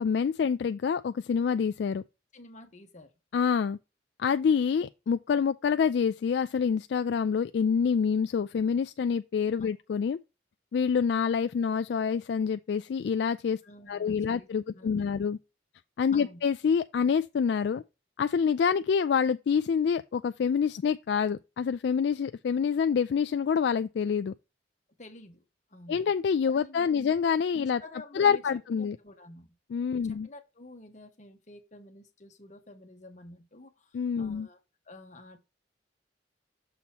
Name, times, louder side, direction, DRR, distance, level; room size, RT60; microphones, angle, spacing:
voice 1, 0.0-2.0 3.3-3.8 4.2-10.2 10.7-13.6 13.9-15.4 16.0-17.8 18.2-24.3 25.9-27.8 28.1-29.0 29.7-30.3 33.9-34.5, left 6 dB, 60° left, 0.3 m, -27 dB
voice 2, 2.3-3.1 9.6-9.8 13.6-15.2 16.1-16.4 25.0-25.4 25.7-26.0 26.5-27.2 27.6-29.5 29.9-34.6 34.8-35.4, left 2 dB, 40° left, 1.2 m, -50 dB
6.9 x 3.0 x 5.9 m
head